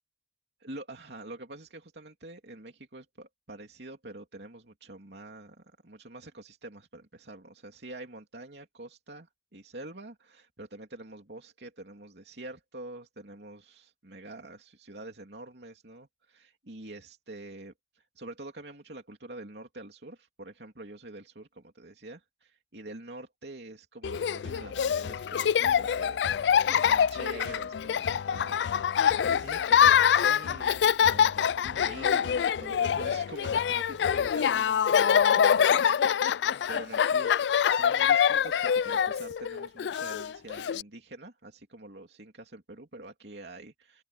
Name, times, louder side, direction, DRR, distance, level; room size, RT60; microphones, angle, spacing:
voice 1, 0.6-29.0 29.4-44.0, right 2 dB, 75° right, 2.9 m, -46 dB
Laughter, 24.0-40.8, left 8 dB, 80° left, 0.3 m, -25 dB
head